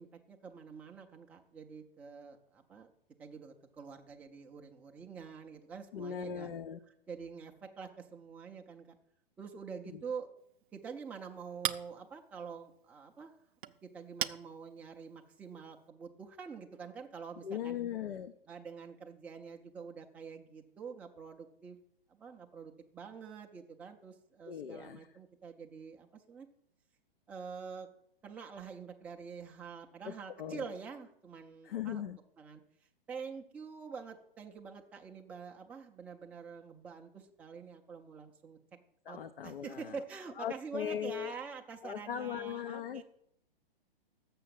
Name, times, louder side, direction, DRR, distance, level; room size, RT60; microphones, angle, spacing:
voice 1, 0.0-2.9 3.2-6.5 7.1-9.0 9.4-10.3 10.7-13.3 13.7-17.8 18.5-21.8 22.1-26.5 27.3-27.9 28.2-32.6 33.1-38.6 39.1-43.0, right 5 dB, 5° right, 2 dB, 0.4 m, -46 dB
voice 2, 5.9-6.8 9.9-10.0 17.4-18.3 24.5-25.0 30.1-30.7 31.6-32.2 39.1-40.0 40.4-41.3 41.8-43.0, left 9 dB, 70° left, 10 dB, 0.6 m, -39 dB
Chink clink, 10.4-15.9, right 10 dB, 60° right, 0.5 m, -43 dB
6.9 x 6.2 x 7.5 m, 0.73 s
figure-of-eight pair, 115°, 29 cm